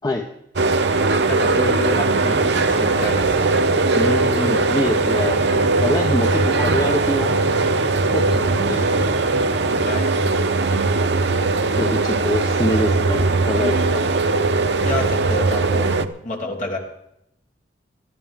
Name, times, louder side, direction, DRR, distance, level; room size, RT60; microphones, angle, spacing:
sound 1, 0.6-16.1, right 3 dB, 65° right, 0.8 m, -19 dB
voice 1, 1.3-3.8 9.8-10.1 14.8-16.0 16.2-16.8, left 2 dB, 45° left, -1 dB, 3.3 m, -29 dB
sound 2, 1.7-9.9, equal, 50° right, 3.2 m, -35 dB
voice 2, 3.9-5.4 5.8-7.3 8.0-8.9 11.8-14.1, left 1 dB, 20° left, 3 dB, 0.9 m, -25 dB
18.5 x 13.0 x 3.6 m, 0.78 s
head